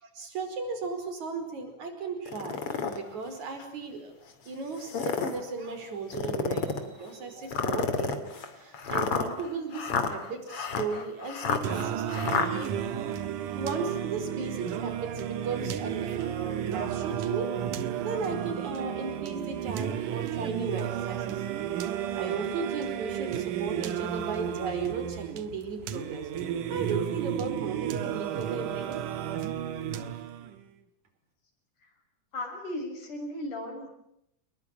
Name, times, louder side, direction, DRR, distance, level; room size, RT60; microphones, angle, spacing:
voice 1, 0.0-2.6 2.9-4.1 4.5-8.2 8.5-12.7 13.6-17.5 18.0-21.5 22.2-26.3 26.7-29.0, right 4 dB, 65° right, 7 dB, 6.2 m, -36 dB
sound 1, 2.3-3.0 3.6-3.7 4.7-5.4 6.1-6.9 7.5-12.5, left 5 dB, 50° left, 3.4 m, -30 dB
Singing, 11.6-30.6, right 10 dB, 90° right, 2.9 m, -33 dB
voice 2, 32.3-33.9, left 1 dB, 80° left, 3 dB, 8.2 m, -37 dB
29.5 x 21.0 x 9.1 m, 0.78 s
omnidirectional pair, 3.6 m